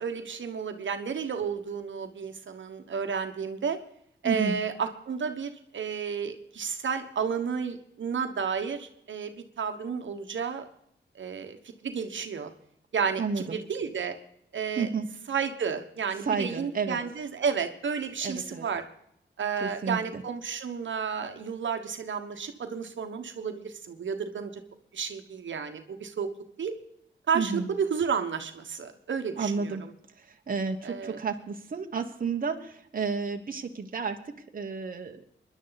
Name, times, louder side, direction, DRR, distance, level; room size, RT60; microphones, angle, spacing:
voice 1, 0.0-3.8 4.2-10.7 11.2-11.6 11.8-12.5 12.9-14.1 14.5-14.9 15.3-18.8 19.4-24.5 24.9-26.3 26.6-26.7 27.3-29.8 30.8-31.2, right 6 dB, 75° right, 7 dB, 1.3 m, -32 dB
voice 2, 4.2-4.6 13.2-13.6 14.8-15.1 16.2-17.0 18.2-18.7 19.6-20.2 27.3-27.7 29.4-29.8 30.2-35.3, right 5 dB, 45° right, 4 dB, 1.3 m, -31 dB
24.5 x 11.0 x 4.1 m, 0.73 s
wide cardioid pair, 110°, 20 cm